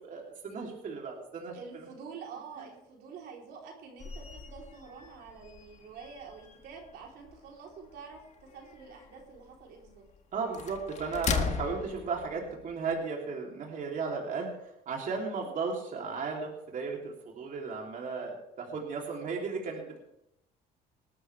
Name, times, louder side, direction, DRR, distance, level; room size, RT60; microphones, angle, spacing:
voice 1, 0.0-1.6 10.3-14.5 14.9-20.0, right 5 dB, 50° right, -1 dB, 3.1 m, -35 dB
voice 2, 1.5-10.0, right 5 dB, 75° right, 0 dB, 3.6 m, -47 dB
sound 1, 4.0-13.0, left 6 dB, 45° left, 1.6 m, -39 dB
19.5 x 13.0 x 3.4 m, 0.79 s
cardioid pair, 110°, 17 cm